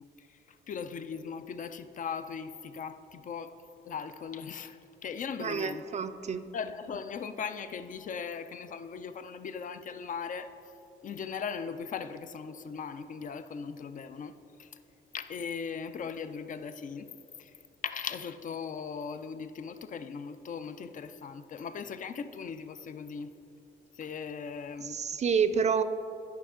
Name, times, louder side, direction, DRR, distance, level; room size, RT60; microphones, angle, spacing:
voice 1, 0.0-5.8 6.5-10.5 11.0-14.8 15.1-17.1 17.4-17.5 17.8-23.4 23.9-25.0, left 6 dB, 40° left, 11 dB, 0.4 m, -39 dB
voice 2, 5.4-6.5 24.8-25.8, right 6 dB, 35° right, 10 dB, 0.4 m, -28 dB
9.3 x 5.7 x 3.7 m, 2.8 s
cardioid pair, 90°, 20 cm